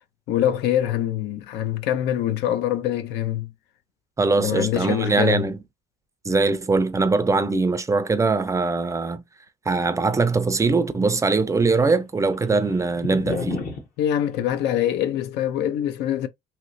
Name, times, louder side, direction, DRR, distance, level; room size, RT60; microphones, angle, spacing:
voice 1, 0.3-3.5 4.4-5.4 14.0-16.3, left 11 dB, 80° left, 0.5 m, -24 dB
voice 2, 4.2-5.6 6.3-9.2 9.7-13.6, right 3 dB, 20° right, 0.4 m, -21 dB
sound 1, 10.1-11.1 11.3-11.4 11.8-13.9, left 3 dB, 55° left, 1.1 m, -31 dB
2.9 x 2.8 x 2.6 m
cardioid pair, 110°, 17 cm